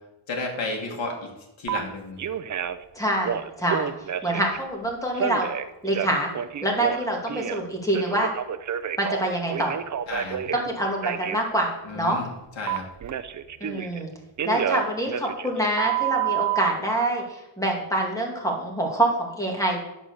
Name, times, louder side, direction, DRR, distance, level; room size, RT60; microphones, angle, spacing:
voice 1, 0.3-1.3 1.6-2.2 10.1-10.6 11.8-12.8, left 3 dB, 70° left, 0 dB, 2.2 m, -32 dB
Telephone, 1.7-1.8 2.2-2.8 3.2-4.6 5.1-7.6 7.9-10.7 11.0-11.4 12.7-14.0 14.4-16.7, right 10 dB, 40° right, 0.5 m, -29 dB
voice 2, 2.9-3.9 4.2-5.5 5.8-6.3 6.6-8.3 9.0-9.8 10.5-12.2 13.6-14.1 14.4-19.8, right 1 dB, 5° left, 0 dB, 2.2 m, -26 dB
10.0 x 4.7 x 6.9 m, 0.93 s
wide cardioid pair, 120°, 48 cm